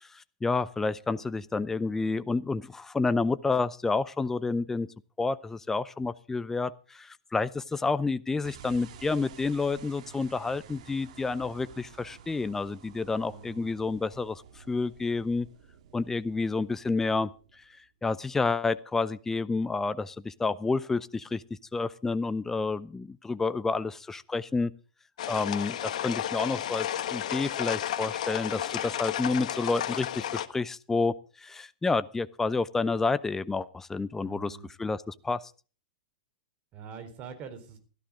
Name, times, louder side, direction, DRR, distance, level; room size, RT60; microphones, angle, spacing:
voice 1, 0.0-4.9 5.2-15.5 15.9-21.4 21.7-24.7 25.3-35.5, left 3 dB, 10° left, 15 dB, 0.6 m, -29 dB
sound 1, 8.4-17.8, right 8 dB, 65° right, 2.0 m, -51 dB
voice 2, 13.3-13.7 34.2-34.7 36.7-37.8, right 6 dB, 35° right, 9 dB, 4.2 m, -44 dB
sound 2, 25.2-30.5, left 11 dB, 65° left, 1.4 m, -32 dB
17.0 x 13.0 x 3.7 m, 0.37 s
hypercardioid pair, 115°, 4 cm